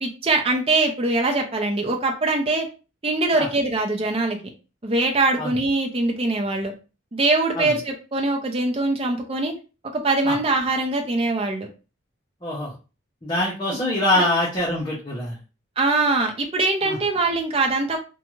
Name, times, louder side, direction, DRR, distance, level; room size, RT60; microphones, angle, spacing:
voice 1, 0.0-2.7 3.0-4.4 4.8-6.7 7.1-9.5 9.9-11.7 13.7-13.8 14.1-14.3 15.8-18.0, right 2 dB, 30° right, 2 dB, 0.5 m, -22 dB
voice 2, 12.4-12.7 13.2-15.3 16.8-17.0, left 1 dB, 20° left, -6 dB, 0.7 m, -24 dB
2.5 x 2.2 x 3.0 m, 0.32 s
head